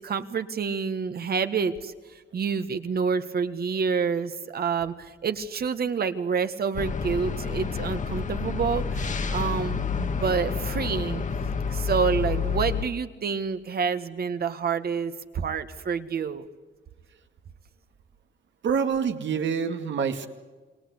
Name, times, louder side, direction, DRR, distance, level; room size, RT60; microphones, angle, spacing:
voice 1, 0.0-1.9 2.3-11.2 11.7-16.5, right 6 dB, 55° right, 10 dB, 1.7 m, -28 dB
sound 1, 6.7-12.8, left 5 dB, 40° left, 1.5 m, -29 dB
voice 2, 18.6-20.3, right 6 dB, 75° right, 7 dB, 2.2 m, -26 dB
28.5 x 21.0 x 8.1 m, 1.4 s
wide cardioid pair, 140°, 19 cm